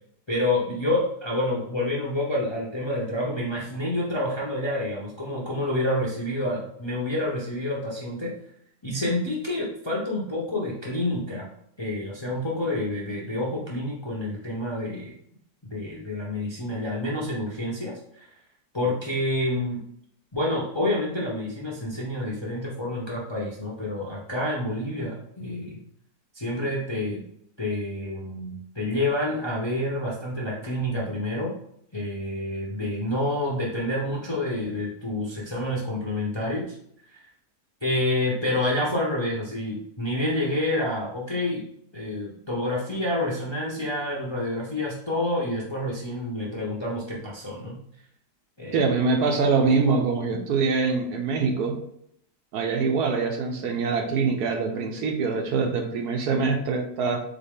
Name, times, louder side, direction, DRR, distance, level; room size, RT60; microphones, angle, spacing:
voice 1, 0.3-8.3 8.8-11.5 11.8-15.1 15.7-18.0 18.7-19.8 20.3-25.8 26.3-27.2 27.6-31.5 31.9-36.7 37.1-37.2 37.8-41.6 41.9-47.8 48.6-48.9, left 1 dB, 25° left, -5 dB, 0.6 m, -28 dB
voice 2, 48.7-51.7 52.5-57.2, right 4 dB, 70° right, 4 dB, 1.2 m, -24 dB
4.0 x 3.7 x 3.6 m, 0.70 s
omnidirectional pair, 1.8 m